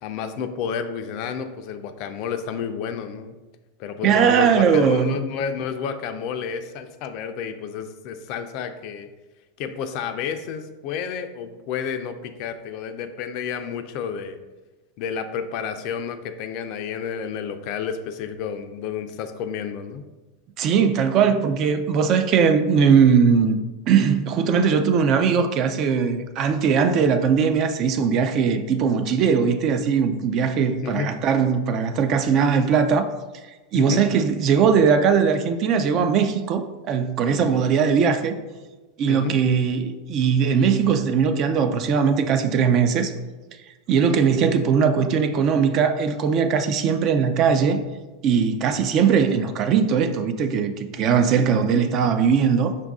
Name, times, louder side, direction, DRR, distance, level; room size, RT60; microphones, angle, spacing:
voice 1, 0.0-3.3 3.8-9.1 9.6-14.4 15.0-20.1 30.8-31.2 33.7-34.0 39.1-39.4, left 7 dB, 55° left, 0.4 m, -30 dB
voice 2, 4.0-5.2 20.6-23.6 23.9-33.1 33.7-38.4 39.0-43.1 43.9-47.8 48.2-52.8, right 6 dB, 45° right, 0.4 m, -20 dB
5.3 x 2.5 x 3.5 m
supercardioid pair, 125°, 0 cm